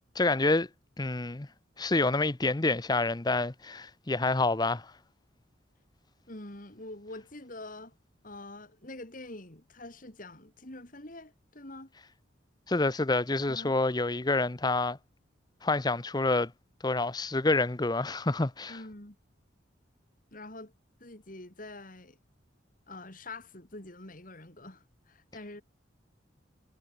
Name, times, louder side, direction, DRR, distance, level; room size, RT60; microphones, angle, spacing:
voice 1, 0.2-0.7 1.0-1.5 1.8-4.9 12.7-15.0 15.6-16.5 16.8-18.8, left 2 dB, 20° left, 0.7 m, -27 dB
voice 2, 6.3-7.9 8.2-11.9 13.5-13.7 18.7-19.2 20.3-20.7 21.0-22.2 22.9-25.6, left 2 dB, 45° left, 3.0 m, -45 dB
head